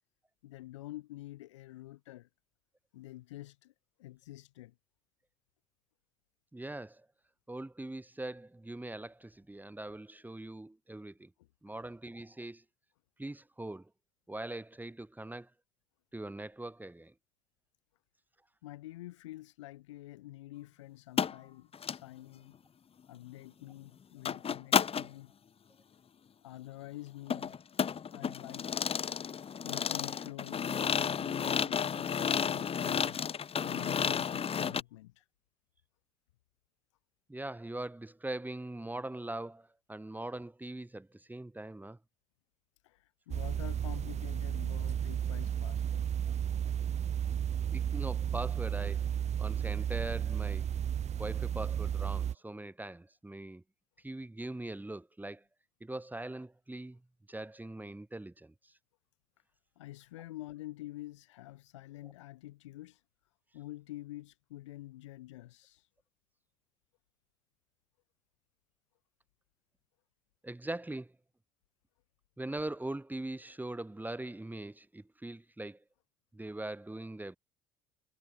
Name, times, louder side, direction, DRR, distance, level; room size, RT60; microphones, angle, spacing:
voice 1, 0.4-2.3 2.9-3.7 4.0-4.7 11.4-11.7 18.6-22.6 23.1-25.3 26.4-27.6 28.1-28.8 29.6-35.3 42.8-46.1 59.8-63.0 63.5-65.9, left 16 dB, 85° left, 3.9 m, -48 dB
voice 2, 6.5-7.1 7.5-11.3 11.6-12.6 13.2-13.9 14.3-15.5 16.1-17.1 37.3-42.0 46.3-46.4 47.7-50.7 51.2-53.6 54.0-55.4 55.8-57.0 57.3-58.7 70.4-71.1 72.4-75.8 76.3-77.4, right 2 dB, 10° right, 4.7 m, -41 dB
sound 1, 21.2-21.4 21.7-22.0 24.2-25.1 27.3-34.8, left 7 dB, 40° left, 1.5 m, -32 dB
sound 2, 43.3-52.4, right 9 dB, 50° right, 1.7 m, -33 dB
hypercardioid pair, 60°, 15 cm